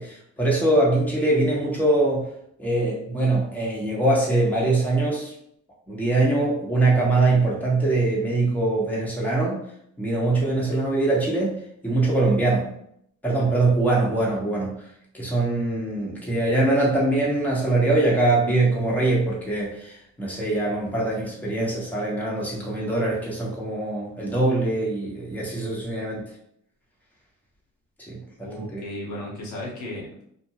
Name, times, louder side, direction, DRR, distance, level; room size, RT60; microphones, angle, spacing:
voice 1, 0.0-2.3 2.6-5.3 5.9-9.6 10.0-12.7 13.2-14.8 15.1-26.2 28.1-28.8, right 2 dB, 5° left, -5 dB, 1.0 m, -23 dB
voice 2, 28.4-30.3, left 1 dB, 75° left, -3 dB, 1.0 m, -35 dB
2.6 x 2.1 x 2.8 m, 0.70 s
cardioid pair, 90°, 30 cm